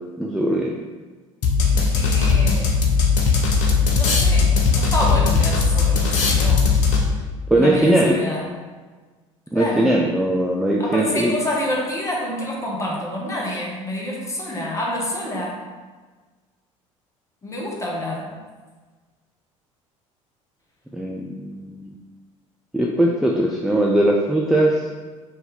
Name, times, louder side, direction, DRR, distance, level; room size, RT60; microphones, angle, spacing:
voice 1, 0.2-0.7 7.5-8.2 9.5-11.3 20.9-21.9 22.7-24.8, right 1 dB, ahead, -1 dB, 0.4 m, -20 dB
sound 1, 1.4-7.3, left 5 dB, 65° left, 0.7 m, -18 dB
voice 2, 1.7-2.9 3.9-6.7 7.5-8.5 9.5-9.9 10.8-15.6 17.4-18.4, left 1 dB, 20° left, -2 dB, 1.1 m, -27 dB
4.3 x 2.7 x 3.7 m, 1.4 s
figure-of-eight pair, 65°, 17 cm